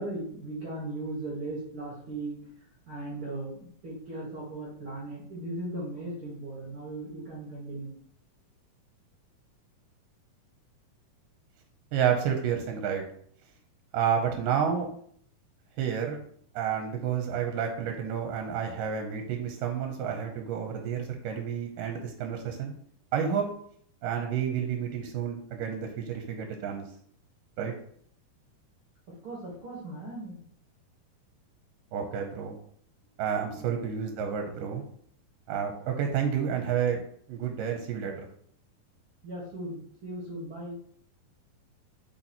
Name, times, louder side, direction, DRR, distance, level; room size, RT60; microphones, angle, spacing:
voice 1, 0.0-2.4 2.9-8.0 29.2-30.4 33.6-33.7 39.2-40.8, right 2 dB, 50° right, -3 dB, 1.8 m, -37 dB
voice 2, 11.9-13.0 13.9-14.9 15.8-16.2 16.5-22.7 23.1-23.4 24.0-26.9 27.6-27.7 31.9-32.5 33.2-34.8 35.5-37.0 37.3-38.1, right 8 dB, 75° right, 3 dB, 2.2 m, -30 dB
6.9 x 5.2 x 2.9 m, 0.62 s
omnidirectional pair, 4.2 m